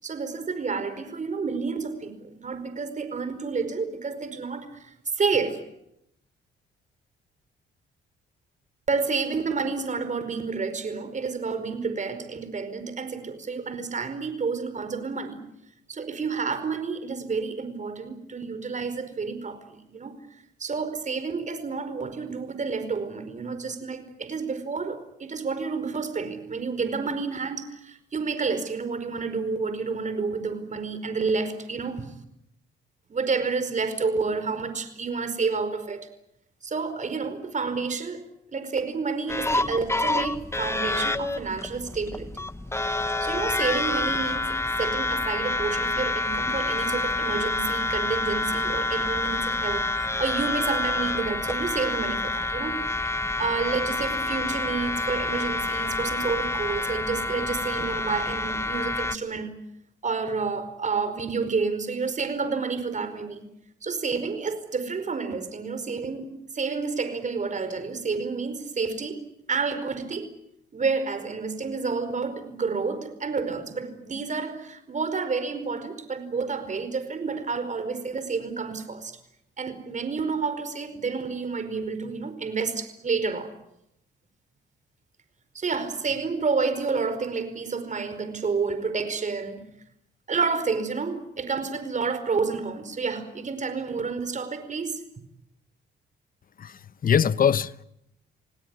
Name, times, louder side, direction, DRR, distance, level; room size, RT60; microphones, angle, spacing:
voice 1, 0.0-5.6 8.9-15.5 15.9-20.2 20.6-32.1 33.1-36.1 36.6-38.2 38.5-42.5 43.2-52.8 53.1-59.5 60.0-63.5 63.8-69.2 69.5-70.3 70.7-79.2 79.6-83.5 85.5-89.6 90.3-95.0, right 4 dB, 40° right, 4.9 m, -29 dB
sound 1, 39.3-59.2, left 2 dB, 15° left, 1.1 m, -28 dB
voice 2, 96.6-97.8, left 8 dB, 45° left, 1.0 m, -23 dB
28.0 x 18.5 x 9.7 m
cardioid pair, 90°, 20 cm